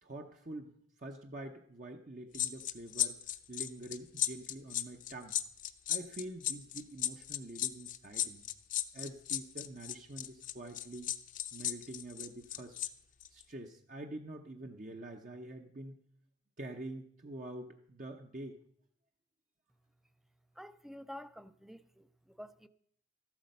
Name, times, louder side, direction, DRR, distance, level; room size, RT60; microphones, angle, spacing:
voice 1, 0.0-3.2 3.5-5.4 5.9-8.5 8.9-11.1 11.5-12.8 13.3-16.0 16.6-18.6, right 1 dB, 40° right, 0.8 m, -46 dB
sound 1, 2.3-12.9 13.2-13.4, left 11 dB, 40° left, 0.6 m, -35 dB
voice 2, 20.6-22.7, equal, ahead, 0.4 m, -49 dB
14.0 x 12.0 x 5.3 m
head